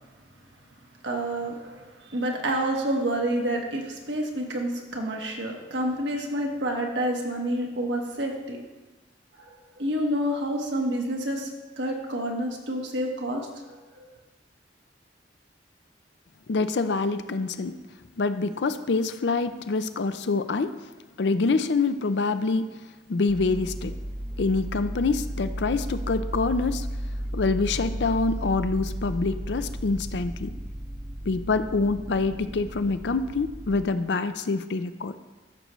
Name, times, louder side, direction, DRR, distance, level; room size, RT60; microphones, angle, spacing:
voice 1, 1.0-8.6 9.4-11.5 11.8-13.5 13.9-14.1, right 1 dB, 80° right, 1 dB, 1.4 m, -28 dB
voice 2, 16.5-17.8 18.2-20.8 21.2-22.7 23.1-24.0 24.4-26.9 27.3-30.5 31.3-35.1, left 3 dB, 70° left, 11 dB, 0.5 m, -26 dB
sound 1, 23.3-33.9, equal, 20° right, 0.6 m, -34 dB
13.5 x 6.6 x 3.1 m, 1.2 s
head